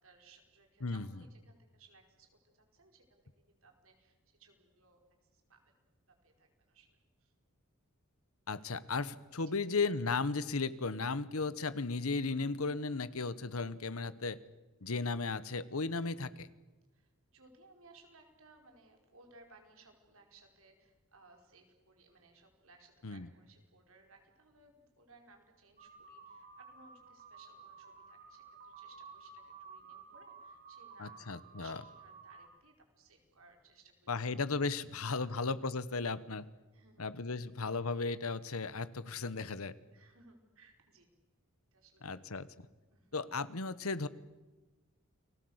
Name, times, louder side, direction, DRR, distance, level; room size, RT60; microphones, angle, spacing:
voice 1, 0.0-3.2 3.5-5.0 5.3-5.6 6.2-7.3 9.4-9.6 16.9-34.6 34.9-35.4 36.7-37.1 37.3-37.5 39.9-41.1 41.7-42.4 42.9-43.2, right 3 dB, 65° right, 4 dB, 5.1 m, -63 dB
voice 2, 8.5-14.4 14.8-16.5 23.0-23.3 31.0-31.8 34.1-36.5 37.0-39.7 42.0-42.5 43.1-44.1, left 4 dB, 70° left, 15 dB, 1.2 m, -35 dB
sound 1, 25.8-32.5, right 5 dB, 40° right, 4.2 m, -54 dB
30.0 x 20.5 x 8.1 m, 1.2 s
head